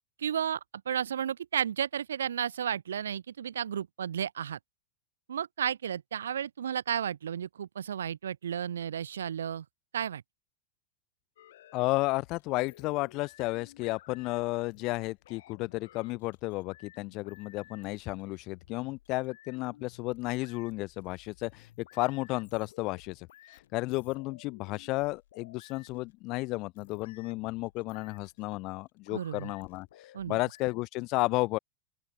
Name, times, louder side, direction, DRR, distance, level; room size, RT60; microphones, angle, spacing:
voice 1, 0.2-0.6 0.9-4.6 5.3-9.6 9.9-10.2 29.1-29.5 30.1-30.4, right 9 dB, 65° right, 0.6 m, -33 dB
sound 1, 11.4-30.7, left 13 dB, 60° left, 2.6 m, -57 dB
voice 2, 11.7-23.3 23.5-29.9 30.2-31.6, left 22 dB, 40° left, 0.9 m, -33 dB
open air
figure-of-eight pair, 90°, 0 cm